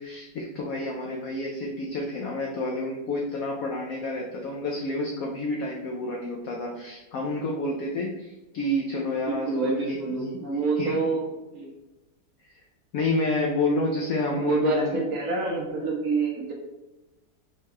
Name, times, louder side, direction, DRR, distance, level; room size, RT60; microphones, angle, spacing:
voice 1, 0.0-10.4 10.8-11.0 12.5-12.6 12.9-15.0, left 2 dB, 80° left, -1 dB, 0.7 m, -29 dB
voice 2, 9.3-11.3 11.5-11.7 14.3-16.5, right 3 dB, 65° right, -2 dB, 1.0 m, -27 dB
4.5 x 2.2 x 3.0 m, 1.0 s
omnidirectional pair, 2.0 m